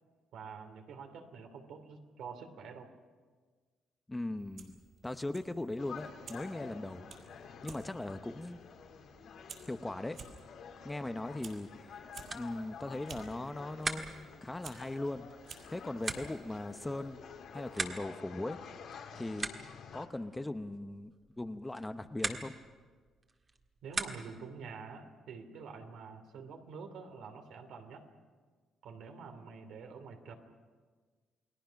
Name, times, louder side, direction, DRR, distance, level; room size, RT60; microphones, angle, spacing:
voice 1, 0.3-2.9 23.8-28.1 28.8-30.3, right 5 dB, 75° right, 6 dB, 2.8 m, -47 dB
voice 2, 4.1-7.0 7.6-8.6 9.7-10.2 10.8-12.1 12.3-15.3 15.7-17.2 17.5-18.6 19.1-19.5 19.9-21.1 21.4-22.5, left 2 dB, 10° left, 10 dB, 0.7 m, -39 dB
Fire, 4.4-17.8, right 5 dB, 50° right, 4.4 m, -55 dB
sound 1, 5.8-20.1, left 6 dB, 70° left, 2.5 m, -50 dB
sound 2, 12.2-24.6, right 3 dB, 30° right, 1.7 m, -44 dB
29.5 x 20.0 x 5.8 m, 1.5 s
cardioid pair, 135°, 0 cm